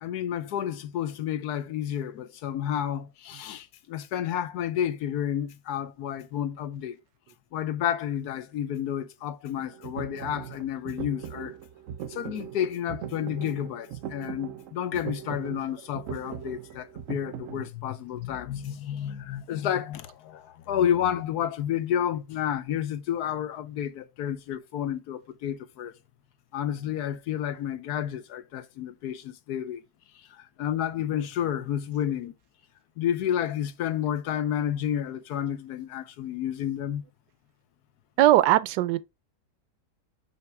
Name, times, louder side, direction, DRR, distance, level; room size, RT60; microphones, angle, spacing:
voice 1, 0.0-7.0 7.5-11.5 12.1-25.9 26.5-29.8 30.4-32.3 33.0-37.0, left 10 dB, 70° left, 1.1 m, -30 dB
sound 1, 9.6-17.7, right 9 dB, 65° right, 0.8 m, -40 dB
voice 2, 38.2-39.0, right 14 dB, 80° right, 1.2 m, -20 dB
5.8 x 5.8 x 3.3 m
omnidirectional pair, 1.8 m